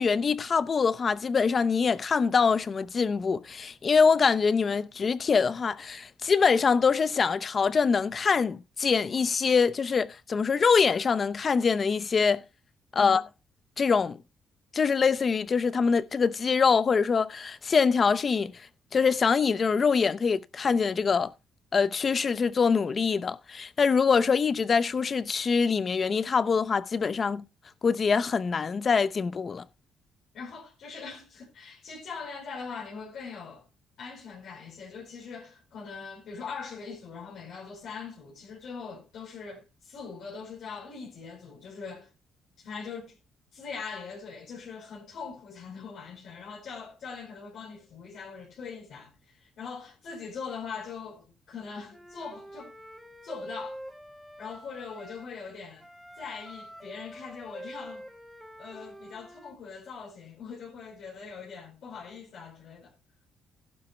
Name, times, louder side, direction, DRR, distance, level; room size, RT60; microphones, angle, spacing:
voice 1, 0.0-12.4 12.9-13.2 13.8-14.2 14.7-18.6 18.9-21.3 21.7-27.4 27.8-29.6, left 5 dB, 40° left, 0.7 m, -24 dB
voice 2, 30.3-33.7 34.0-42.1 42.6-43.2 43.5-52.7 53.2-53.8 54.4-55.8 56.2-58.1 58.6-62.9, left 5 dB, 75° left, 4.7 m, -41 dB
Wind instrument woodwind instrument, 51.9-55.3 55.8-59.6, equal, ahead, 2.7 m, -46 dB
15.5 x 11.5 x 2.2 m
cardioid pair, 90°, 0 cm